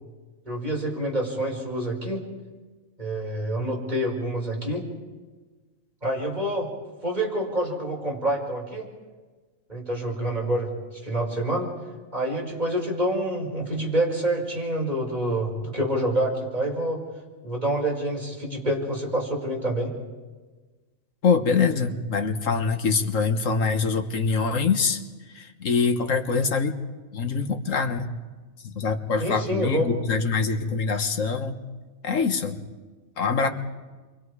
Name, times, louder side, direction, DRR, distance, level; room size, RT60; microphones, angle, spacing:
voice 1, 0.4-2.3 3.0-4.9 6.0-6.7 7.0-8.9 9.7-11.7 12.1-17.0 17.4-19.9 29.2-30.1 33.4-33.5, right 1 dB, 30° right, -1 dB, 5.0 m, -27 dB
voice 2, 21.2-25.0 25.3-26.8 27.1-28.1 28.6-31.6 32.0-32.6 33.2-33.5, left 5 dB, 70° left, 6 dB, 1.7 m, -24 dB
28.5 x 24.5 x 4.9 m, 1.3 s
omnidirectional pair, 1.4 m